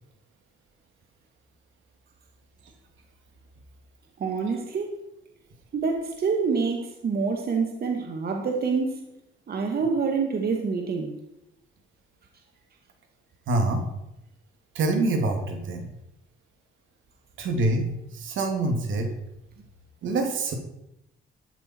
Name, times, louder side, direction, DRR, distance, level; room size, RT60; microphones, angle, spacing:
voice 1, 4.2-4.9 5.7-9.1 9.5-11.2, right 5 dB, 50° right, 3 dB, 2.1 m, -27 dB
voice 2, 13.5-13.8 14.7-15.9 17.4-17.8 18.1-19.1 20.0-20.5, right 2 dB, 75° right, 3 dB, 2.9 m, -25 dB
13.0 x 12.5 x 4.7 m, 0.85 s
cardioid pair, 90°, 20 cm